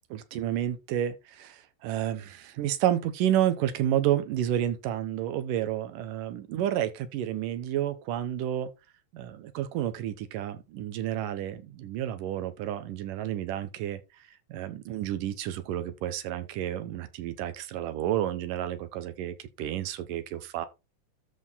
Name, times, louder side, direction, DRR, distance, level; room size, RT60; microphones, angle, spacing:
voice 1, 0.1-8.7 9.1-14.0 14.5-20.7, right 11 dB, 85° right, 2.6 m, -30 dB
13.0 x 4.8 x 4.1 m
omnidirectional pair, 3.7 m